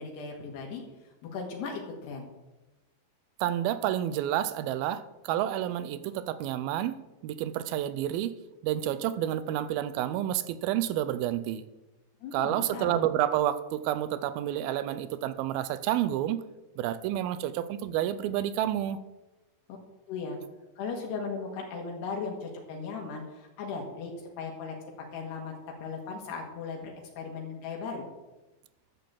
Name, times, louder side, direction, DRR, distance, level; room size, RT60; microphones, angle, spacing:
voice 1, 0.0-2.3 12.2-13.0 19.7-19.8 20.1-20.4 20.8-24.8 25.1-25.5 25.8-28.1, left 5 dB, 80° left, 0 dB, 3.7 m, -37 dB
voice 2, 3.4-8.4 8.6-11.6 12.3-16.4 16.8-19.0, right 12 dB, 80° right, 14 dB, 2.2 m, -29 dB
12.0 x 6.7 x 7.6 m, 1.1 s
omnidirectional pair, 4.7 m